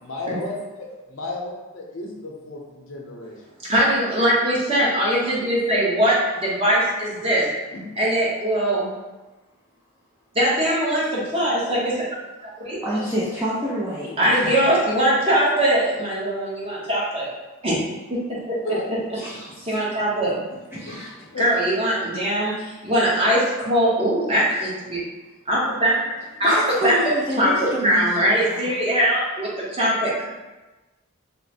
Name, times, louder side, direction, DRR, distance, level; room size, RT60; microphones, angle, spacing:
voice 1, 0.0-3.3 7.7-7.9 18.6-18.8 19.2-19.3 20.5-20.6 20.8-21.0 21.3-21.4, left 2 dB, 65° left, -2 dB, 0.7 m, -33 dB
voice 2, 3.7-7.4 8.0-8.9 10.4-11.9 12.6-12.8 14.2-17.3 17.6-17.8 18.1-18.2 18.5-18.6 19.6-20.3 21.4-22.5 22.8-25.0 25.5-25.9 26.4-26.6 26.8-26.9 27.4-27.5 27.8-30.2, equal, 25° right, -7 dB, 0.9 m, -21 dB
voice 3, 12.8-14.5 19.2-19.8 20.7-21.1 26.4-28.6, equal, 10° right, -8 dB, 0.4 m, -28 dB
3.1 x 2.1 x 4.1 m, 1.1 s
head